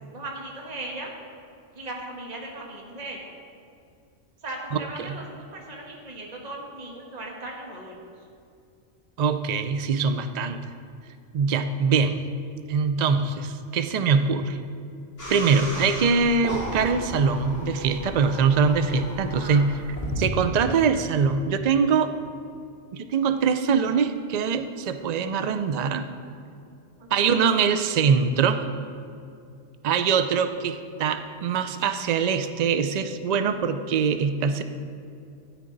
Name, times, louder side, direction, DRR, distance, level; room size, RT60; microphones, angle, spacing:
voice 1, 0.1-1.1 1.7-3.3 4.4-8.0 19.2-19.7 27.0-27.5, right 2 dB, 35° right, -1 dB, 1.4 m, -38 dB
voice 2, 9.2-10.6 11.3-12.2 12.7-14.6 15.3-19.7 20.2-22.1 22.9-26.1 27.1-28.6 29.8-34.6, right 5 dB, 75° right, 9 dB, 0.3 m, -23 dB
sound 1, 15.2-20.3, left 1 dB, 35° left, 2.7 m, -35 dB
13.5 x 9.5 x 3.9 m, 2.5 s
omnidirectional pair, 1.3 m